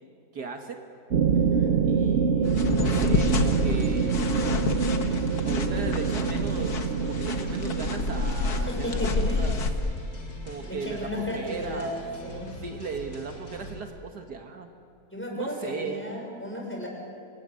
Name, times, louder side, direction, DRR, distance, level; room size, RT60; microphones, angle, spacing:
voice 1, 0.3-0.9 1.9-4.3 5.5-9.0 9.4-9.6 10.4-14.7 15.3-16.1, right 5 dB, 65° right, 4 dB, 2.0 m, -37 dB
sound 1, 1.1-9.6, right 5 dB, 50° right, 0.9 m, -26 dB
voice 2, 1.3-1.8 8.7-9.5 10.6-11.9 12.2-12.6 15.1-16.9, left 1 dB, 5° left, -1 dB, 6.3 m, -34 dB
sound 2, 2.4-9.7, left 4 dB, 65° left, 2.0 m, -29 dB
sound 3, 3.1-13.8, left 1 dB, 85° left, 4.1 m, -42 dB
26.0 x 20.5 x 9.7 m, 2.4 s
omnidirectional pair, 1.8 m